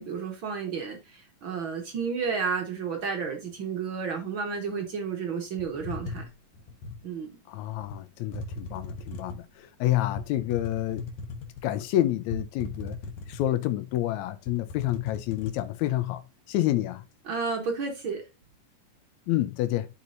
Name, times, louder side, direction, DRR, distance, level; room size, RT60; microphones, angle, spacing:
voice 1, 0.0-6.2 7.0-7.4 17.3-18.2, right 5 dB, 60° right, 1.3 m, -32 dB
sound 1, 5.6-7.0 7.8-8.0 8.3-9.5 10.2-11.8 12.3-13.7 14.1-14.2 14.5-15.7, left 3 dB, 65° left, 2.3 m, -38 dB
voice 2, 7.5-11.0 11.6-13.0 13.3-16.2 16.5-17.0 19.3-19.9, left 14 dB, 85° left, 1.6 m, -28 dB
12.0 x 4.3 x 2.6 m
omnidirectional pair, 3.9 m